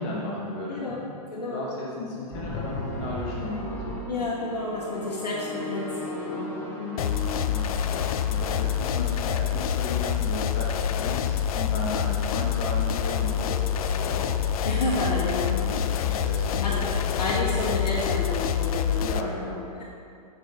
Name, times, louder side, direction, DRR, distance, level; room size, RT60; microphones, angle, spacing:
voice 1, 0.0-1.0 1.4-4.0 7.5-7.7 8.3-14.4 15.4-16.9 19.0-19.7, left 2 dB, 45° left, -4 dB, 1.7 m, -35 dB
voice 2, 0.7-1.7 4.1-7.1 14.6-15.5 16.6-16.9 17.2-19.2, left 2 dB, 90° left, -6 dB, 1.4 m, -30 dB
sound 1, 2.3-8.6, left 1 dB, 10° left, 0.9 m, -36 dB
sound 2, 7.0-19.2, left 9 dB, 60° left, 0.5 m, -26 dB
7.1 x 5.6 x 4.5 m, 2.4 s
hypercardioid pair, 130°, 20 cm